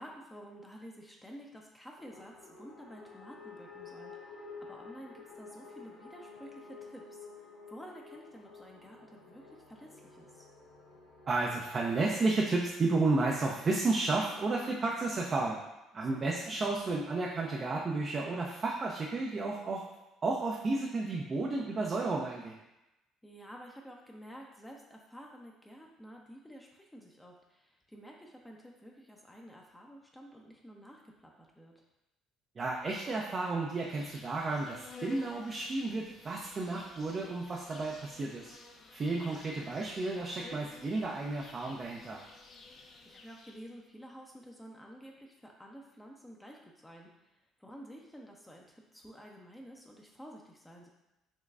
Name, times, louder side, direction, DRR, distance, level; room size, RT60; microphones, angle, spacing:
voice 1, 0.0-10.5 16.0-16.3 23.2-31.8 40.5-40.7 43.0-50.9, equal, 10° left, 0 dB, 0.7 m, -51 dB
sound 1, 2.0-12.8, left 4 dB, 85° left, 1.4 m, -51 dB
voice 2, 11.3-15.6 15.9-19.8 20.2-22.6 32.6-38.5 38.9-42.2, right 3 dB, 40° right, -2 dB, 0.6 m, -32 dB
Insect, 33.9-43.7, left 3 dB, 50° left, 0.6 m, -53 dB
5.4 x 3.1 x 2.5 m, 0.94 s
hypercardioid pair, 55°, 0 cm